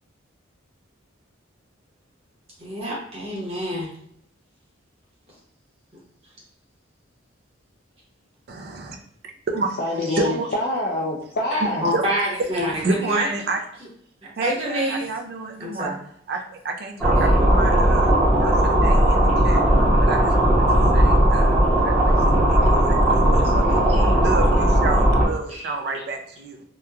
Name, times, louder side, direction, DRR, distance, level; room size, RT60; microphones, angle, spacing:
voice 1, 2.6-3.9 10.1-10.2 11.5-13.3 14.4-15.0 15.6-15.9 17.1-17.3 23.9-24.1 25.5-26.0, equal, 30° right, -6 dB, 0.9 m, -27 dB
voice 2, 8.5-9.0 9.5-10.5 11.9-12.0 12.7-13.6 14.4-16.0 16.3-19.6 20.0-20.6 20.9-23.0 23.2-23.8 24.2-26.6, right 3 dB, 50° right, 4 dB, 0.3 m, -30 dB
voice 3, 9.8-11.8, left 1 dB, 50° left, -3 dB, 0.3 m, -25 dB
sound 1, 17.0-25.3, right 1 dB, 5° right, 0.7 m, -17 dB
2.9 x 2.2 x 2.3 m, 0.67 s
head